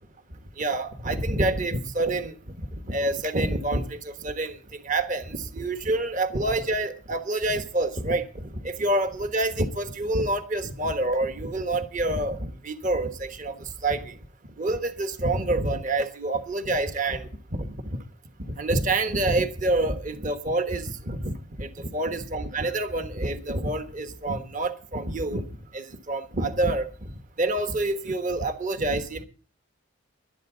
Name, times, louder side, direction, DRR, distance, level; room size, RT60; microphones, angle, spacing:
voice 1, 0.6-2.3 2.9-4.6 4.8-13.5 13.8-14.1 14.6-17.7 18.6-21.3 21.6-25.4 25.7-26.9 27.4-29.2, right 2 dB, 40° right, 1.3 m, -27 dB
20.0 x 11.5 x 3.9 m
head